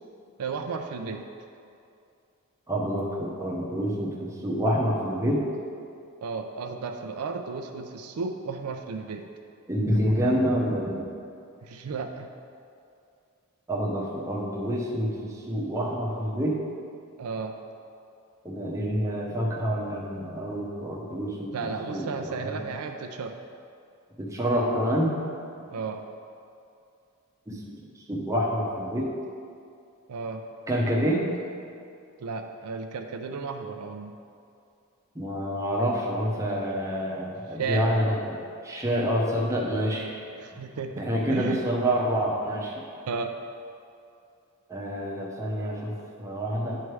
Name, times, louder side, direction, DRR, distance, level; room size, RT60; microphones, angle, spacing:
voice 1, 0.4-1.2 6.2-9.3 11.6-12.3 17.2-17.5 21.5-23.4 25.7-26.0 30.1-30.4 32.2-34.2 37.6-37.9 40.4-40.9 41.3-41.6 43.1-43.3, right 4 dB, 80° right, 5 dB, 0.4 m, -33 dB
voice 2, 2.7-5.4 9.7-11.0 13.7-16.6 18.4-21.5 21.9-22.6 24.2-25.2 27.5-27.7 28.1-29.1 30.7-31.3 35.1-38.4 38.6-40.1 41.0-42.8 44.7-45.9 46.2-46.8, equal, 15° right, -3 dB, 0.8 m, -27 dB
9.6 x 3.2 x 4.7 m, 2.5 s
head